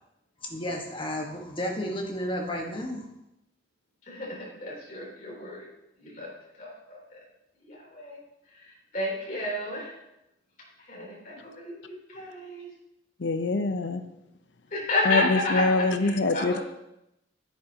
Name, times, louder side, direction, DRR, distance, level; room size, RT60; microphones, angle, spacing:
voice 1, 0.4-3.1, equal, 25° left, 0 dB, 1.4 m, -32 dB
voice 2, 4.1-5.6 6.0-6.3 6.6-7.0 7.6-8.2 8.6-8.7 8.9-9.9 10.9-12.7 14.7-16.6, left 2 dB, 45° left, -4 dB, 3.4 m, -31 dB
voice 3, 13.2-14.1 15.0-16.6, left 3 dB, 70° left, 10 dB, 0.7 m, -25 dB
10.5 x 10.0 x 2.9 m, 0.87 s
head